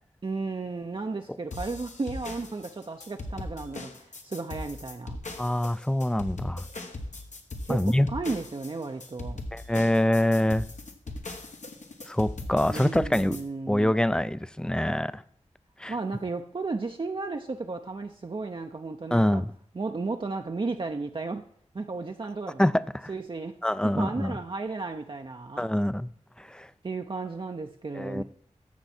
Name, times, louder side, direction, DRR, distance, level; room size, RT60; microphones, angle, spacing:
voice 1, 0.2-3.9 4.2-5.2 7.6-9.4 12.7-13.9 15.9-19.4 19.7-21.4 21.7-22.6 23.1-23.6 23.8-25.7 26.8-28.2, right 3 dB, 40° right, 0.6 m, -34 dB
sound 1, 1.5-13.4, left 2 dB, 70° left, 1.3 m, -39 dB
voice 2, 5.4-6.6 7.7-8.1 9.5-10.6 12.1-13.4 13.7-15.2 15.8-15.9 19.1-19.5 22.6-23.1 23.6-24.4 25.6-26.1 26.4-26.7 27.9-28.2, left 1 dB, 5° left, 0.4 m, -25 dB
14.5 x 5.9 x 4.3 m
wide cardioid pair, 60°, 13 cm